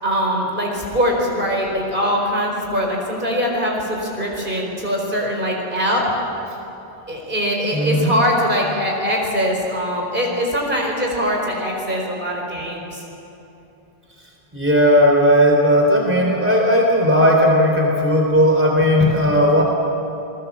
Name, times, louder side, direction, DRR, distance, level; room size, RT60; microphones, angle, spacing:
voice 1, 0.0-6.0 7.1-13.0, equal, 55° right, -1 dB, 4.8 m, -22 dB
voice 2, 7.7-8.2 14.5-19.6, equal, 10° right, 0 dB, 3.6 m, -16 dB
29.0 x 19.5 x 7.4 m, 2.9 s
omnidirectional pair, 1.1 m